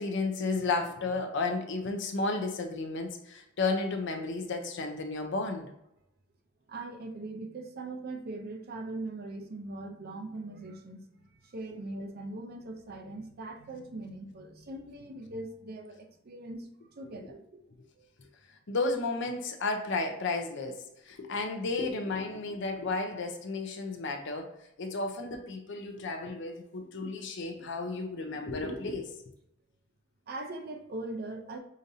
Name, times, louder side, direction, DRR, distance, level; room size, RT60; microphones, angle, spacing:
voice 1, 0.0-5.7 18.7-24.5 24.8-29.1, left 3 dB, 65° left, 4 dB, 0.6 m, -33 dB
voice 2, 6.7-17.6 18.0-18.1 30.3-31.6, right 2 dB, 50° right, 4 dB, 0.6 m, -41 dB
5.0 x 2.6 x 2.7 m, 0.81 s
head